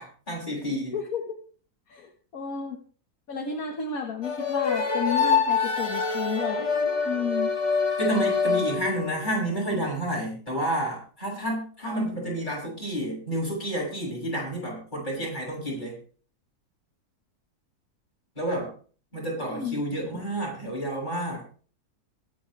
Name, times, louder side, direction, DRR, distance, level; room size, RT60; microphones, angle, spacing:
voice 1, 0.0-1.0 8.0-16.0 18.4-18.7 19.1-21.4, right 1 dB, 30° left, -4 dB, 7.6 m, -30 dB
voice 2, 0.9-1.3 1.9-2.8 3.3-6.7 7.0-7.5 19.5-19.8 20.1-20.2, left 6 dB, 60° left, 2 dB, 2.0 m, -32 dB
sound 1, 4.2-9.3, left 5 dB, 80° left, 3.6 m, -25 dB
23.0 x 9.6 x 3.4 m, 0.42 s
omnidirectional pair, 1.7 m